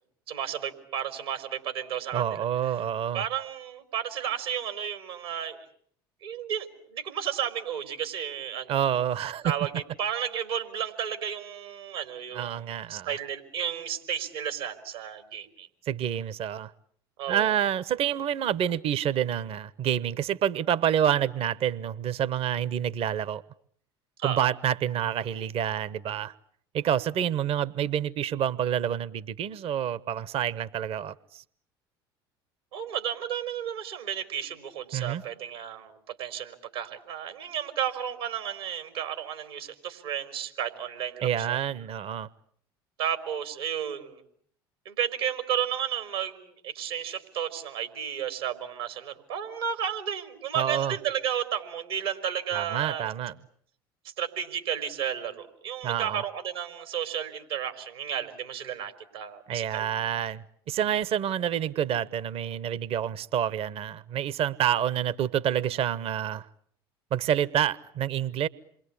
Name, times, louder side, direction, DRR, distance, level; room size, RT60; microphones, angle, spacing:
voice 1, 0.3-2.4 3.1-5.6 6.2-8.8 9.4-12.5 12.9-15.7 17.2-17.5 24.2-24.4 32.7-41.6 43.0-44.2 44.8-53.1 54.2-59.9, right 9 dB, 85° right, 4.2 m, -33 dB
voice 2, 2.1-3.2 8.7-9.6 12.3-13.1 15.9-16.7 17.3-23.4 24.2-26.3 26.7-31.4 34.9-35.2 41.2-42.3 50.6-51.0 52.5-53.3 55.8-56.2 59.5-66.5 67.1-68.5, right 10 dB, 50° right, 1.1 m, -28 dB
28.0 x 23.0 x 8.5 m
hypercardioid pair, 70°, 12 cm